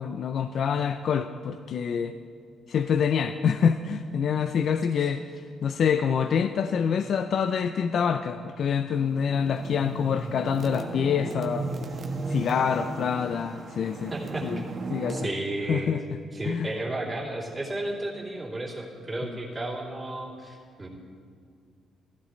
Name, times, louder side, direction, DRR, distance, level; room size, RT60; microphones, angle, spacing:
voice 1, 0.0-2.1 2.7-11.7 12.3-14.1 14.4-14.6 14.9-15.3 15.7-16.2 16.4-16.7, left 7 dB, 60° left, 9 dB, 0.4 m, -26 dB
sound 1, 8.9-15.3, right 3 dB, 45° right, 1.3 m, -35 dB
voice 2, 14.1-14.4 15.1-16.0 16.3-20.9, right 2 dB, 20° right, -4 dB, 3.1 m, -33 dB
15.5 x 15.0 x 3.2 m, 2.2 s
cardioid pair, 90°, 0 cm